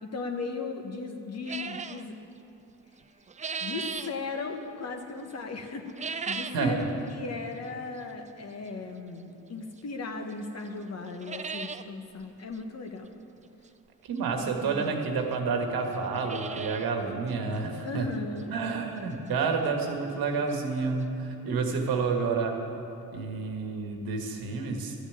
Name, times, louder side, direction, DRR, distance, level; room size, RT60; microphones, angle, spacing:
voice 1, 0.0-2.1 3.6-13.1 14.6-15.0 17.8-18.5, left 3 dB, 45° left, 5 dB, 1.3 m, -37 dB
sound 1, 1.5-2.0 3.0-4.1 5.8-6.7 7.1-7.2 8.0-8.1 9.8-9.9 10.3-10.4 10.7-10.8 11.0-11.8 12.2-12.3 12.5-12.6 14.2-14.3 15.0-15.1 15.3-15.4 15.9-16.9 17.3-17.4 17.9-18.0 18.4-18.5 20.2-20.3 20.5-20.6 21.0-21.1, right 5 dB, 20° right, 0.4 m, -36 dB
voice 2, 6.5-6.8 14.0-18.1 18.5-22.6 23.1-24.9, right 4 dB, 90° right, 3 dB, 1.7 m, -29 dB
12.5 x 7.0 x 9.3 m, 2.8 s
cardioid pair, 110°, 35 cm